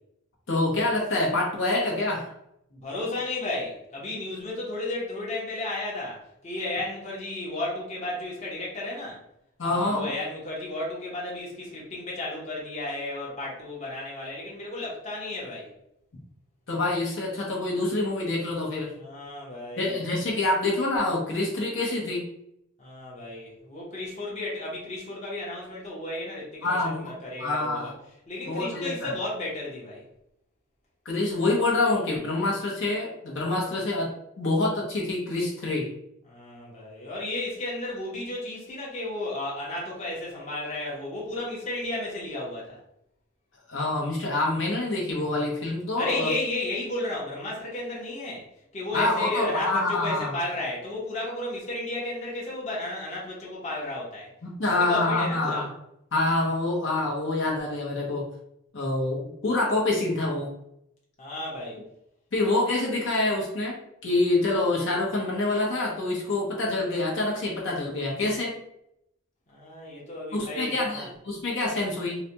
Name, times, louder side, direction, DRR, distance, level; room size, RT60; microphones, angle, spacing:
voice 1, 0.5-2.3 9.6-10.1 16.7-18.9 19.8-22.2 26.6-27.1 27.4-27.9 28.4-29.1 31.0-35.9 43.7-46.3 48.9-50.3 54.4-55.7 56.1-58.3 58.7-60.5 62.3-68.6 70.3-72.2, left 2 dB, 65° left, -3 dB, 0.9 m, -26 dB
voice 2, 2.7-9.2 9.6-15.7 19.0-20.0 22.8-27.9 28.3-30.0 36.3-42.8 46.0-48.5 48.7-54.3 54.6-55.6 61.2-61.8 69.5-71.1, left 2 dB, 35° left, -5 dB, 0.9 m, -33 dB
3.9 x 2.2 x 2.9 m, 0.78 s
head